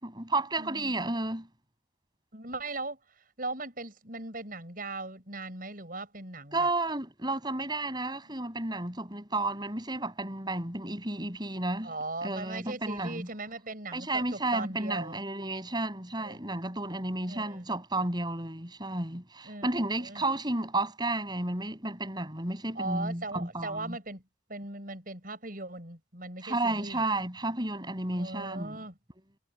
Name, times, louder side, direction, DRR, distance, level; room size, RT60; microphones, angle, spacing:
voice 1, 0.0-1.5 6.5-11.9 12.2-13.3 13.9-24.0 26.4-28.9, right 2 dB, 25° right, 7.8 m, -32 dB
voice 2, 0.6-0.9 2.3-3.0 3.4-6.7 11.8-15.2 16.2-16.4 17.3-17.7 19.4-19.7 20.0-20.2 22.7-24.2 24.5-27.1 28.1-29.0, right 2 dB, 50° right, 7.8 m, -39 dB
head